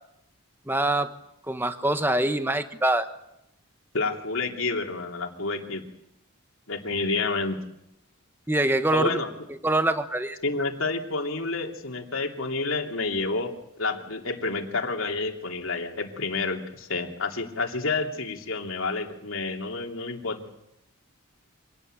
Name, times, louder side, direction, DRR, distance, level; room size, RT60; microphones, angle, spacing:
voice 1, 0.7-1.1 1.5-3.1 8.5-9.2 9.6-10.4, right 1 dB, 10° right, 9 dB, 1.1 m, -24 dB
voice 2, 3.9-5.8 6.7-7.6 8.9-9.3 10.4-20.4, left 3 dB, 75° left, 3 dB, 3.0 m, -29 dB
25.5 x 18.5 x 9.0 m, 0.84 s
head